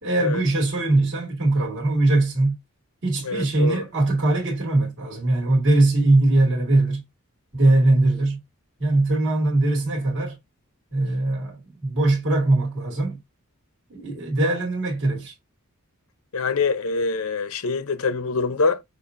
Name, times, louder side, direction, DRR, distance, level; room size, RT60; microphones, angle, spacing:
voice 1, 0.0-2.6 3.0-7.0 7.5-8.4 8.8-10.4 10.9-13.2 13.9-15.3, right 2 dB, 55° right, 2.2 m, -21 dB
voice 2, 3.2-3.8 16.3-18.8, left 4 dB, 75° left, 0.7 m, -24 dB
6.6 x 2.6 x 2.5 m
head